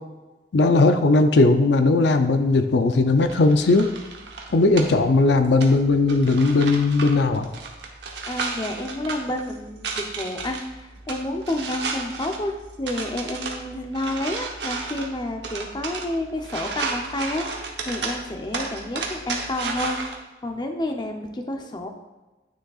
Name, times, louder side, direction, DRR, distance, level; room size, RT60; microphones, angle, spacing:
voice 1, 0.5-3.9 4.5-7.5, left 3 dB, 70° left, 8 dB, 0.5 m, -18 dB
sound 1, 3.2-20.2, right 4 dB, 70° right, 1.0 m, -34 dB
voice 2, 8.3-20.0 20.4-21.9, left 1 dB, 25° left, 4 dB, 0.7 m, -30 dB
9.7 x 6.3 x 2.4 m, 1.1 s
head